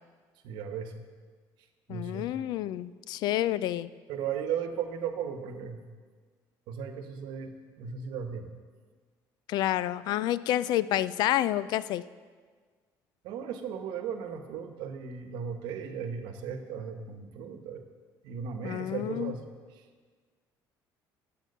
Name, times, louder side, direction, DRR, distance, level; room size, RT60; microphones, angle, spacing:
voice 1, 0.4-1.0 1.9-2.3 4.1-5.9 6.7-8.5 13.2-17.8 18.2-19.4 19.8-19.9, right 7 dB, 85° right, 7 dB, 1.1 m, -36 dB
voice 2, 1.9-3.9 9.5-12.0 18.6-19.3, left 13 dB, 65° left, 17 dB, 0.4 m, -29 dB
11.0 x 7.7 x 6.5 m, 1.5 s
cardioid pair, 150°, 8 cm